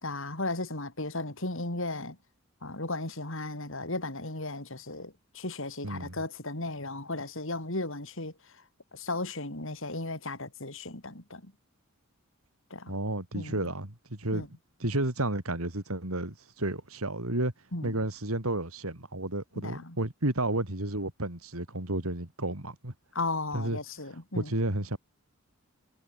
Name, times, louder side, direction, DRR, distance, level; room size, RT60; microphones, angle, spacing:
voice 1, 0.0-2.2 2.6-8.3 8.9-11.5 12.7-13.0 13.3-13.6 14.3-14.5 17.7-18.0 19.6-20.0 23.1-24.5, left 2 dB, 60° left, 4.9 m, -35 dB
voice 2, 5.8-6.1 12.9-14.5 14.8-17.5 17.8-22.9 23.5-23.8 24.1-25.0, right 1 dB, 70° right, 4.0 m, -32 dB
head